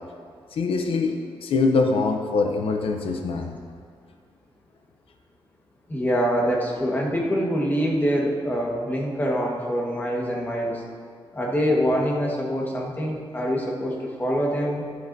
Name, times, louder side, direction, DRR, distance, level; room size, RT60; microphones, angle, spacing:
voice 1, 0.5-3.6, left 3 dB, 80° left, 4 dB, 0.7 m, -23 dB
voice 2, 5.9-10.8 11.3-14.8, equal, 20° left, -2 dB, 1.4 m, -25 dB
12.0 x 11.0 x 2.7 m, 2.1 s
wide cardioid pair, 150°, 9 cm